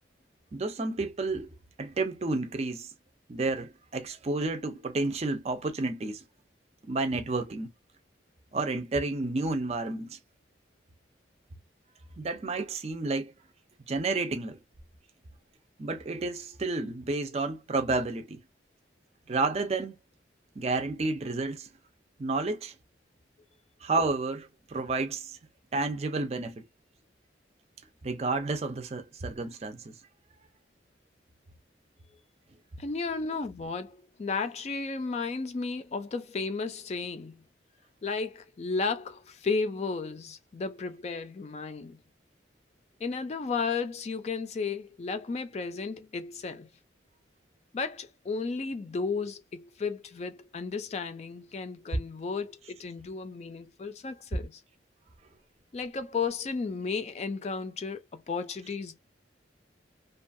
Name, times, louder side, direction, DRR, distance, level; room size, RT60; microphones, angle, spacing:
voice 1, 0.5-1.5 1.8-2.9 3.3-6.2 6.8-7.7 8.5-10.2 12.2-13.3 13.9-14.6 15.8-18.4 19.3-19.9 20.6-21.7 22.2-22.7 23.8-25.4 25.7-26.6 28.0-30.0, right 3 dB, 35° right, 0.4 m, -31 dB
voice 2, 32.8-37.4 38.0-42.0 43.0-46.7 47.7-54.6 55.7-59.0, left 4 dB, 35° left, 0.3 m, -33 dB
2.6 x 2.3 x 2.5 m
head